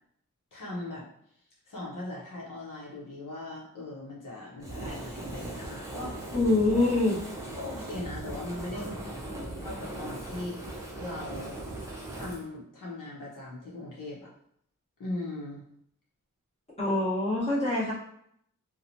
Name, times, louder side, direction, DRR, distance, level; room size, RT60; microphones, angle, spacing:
voice 1, 0.5-1.1 1.6-6.3 7.5-10.6 11.0-11.6 12.1-14.3 15.0-15.6, left 2 dB, 70° left, -6 dB, 0.9 m, -39 dB
Fire, 4.6-12.4, right 1 dB, 10° right, 0.7 m, -39 dB
voice 2, 6.3-7.2 8.7-8.9 16.8-17.9, left 2 dB, 20° left, -7 dB, 1.1 m, -25 dB
2.9 x 2.2 x 2.6 m, 0.70 s
wide cardioid pair, 65°, 33 cm